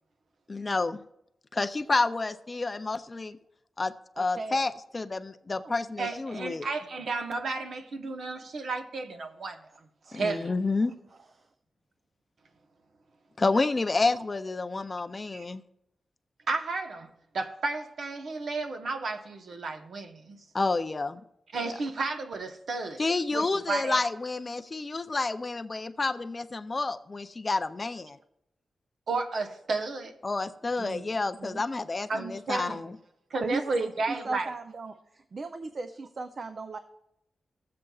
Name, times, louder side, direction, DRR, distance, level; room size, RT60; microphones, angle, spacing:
voice 1, 0.5-1.0 1.5-3.4 3.8-6.7 10.1-10.9 13.4-15.6 20.5-21.2 21.6-21.7 23.0-28.2 30.2-33.0, left 3 dB, 25° left, 9 dB, 0.3 m, -29 dB
voice 2, 4.2-4.6 5.6-5.7 10.1-10.2 30.8-31.1 31.4-31.6 33.4-36.8, right 3 dB, 40° right, 8 dB, 0.4 m, -35 dB
voice 3, 6.0-9.6 10.1-10.5 15.3-15.4 16.5-17.1 17.3-20.4 21.5-23.0 23.3-24.1 29.1-30.1 32.1-32.8 33.3-34.5, right 3 dB, 65° right, 5 dB, 0.9 m, -33 dB
15.5 x 7.6 x 2.3 m, 0.81 s
wide cardioid pair, 175°, 0 cm